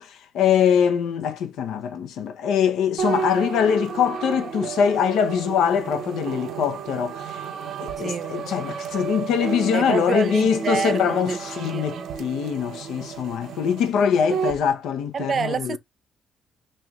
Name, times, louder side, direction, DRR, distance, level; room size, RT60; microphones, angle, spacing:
voice 1, 0.0-7.5 7.8-15.8, left 8 dB, 90° left, 0.7 m, -23 dB
sound 1, 3.0-14.6, right 7 dB, 75° right, 0.9 m, -32 dB
voice 2, 8.0-8.4 9.7-11.4 11.6-12.1 15.1-15.8, right 6 dB, 45° right, 0.4 m, -27 dB
3.2 x 2.9 x 3.6 m
cardioid pair, 100°, 0 cm